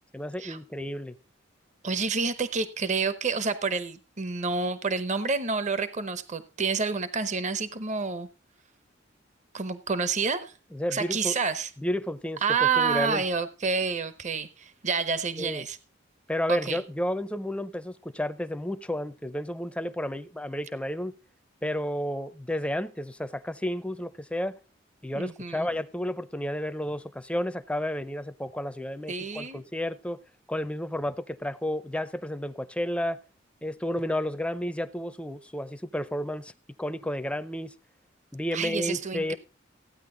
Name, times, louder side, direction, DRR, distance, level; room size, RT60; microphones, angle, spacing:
voice 1, 0.1-1.2 10.7-11.4 11.8-13.2 15.4-15.6 16.3-21.1 21.6-24.6 25.0-30.2 30.5-33.2 33.6-36.5 36.8-37.7 38.3-39.4, left 1 dB, 5° left, 0.6 m, -31 dB
voice 2, 1.8-8.3 9.5-10.5 10.9-11.7 12.4-15.8 16.5-16.8 25.1-25.7 29.1-29.6 38.5-39.4, right 5 dB, 40° right, 0.9 m, -28 dB
15.0 x 9.3 x 3.8 m
head